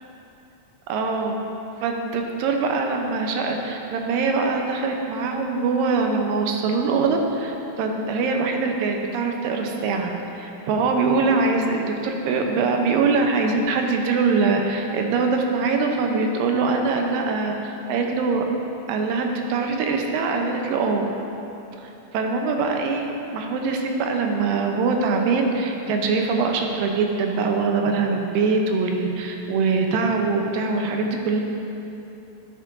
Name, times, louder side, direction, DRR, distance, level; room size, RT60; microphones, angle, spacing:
voice 1, 0.9-1.4 1.8-18.4 18.9-21.0 21.8-31.4, right 4 dB, 80° right, 2 dB, 2.3 m, -23 dB
11.0 x 8.1 x 2.5 m, 2.9 s
omnidirectional pair, 4.1 m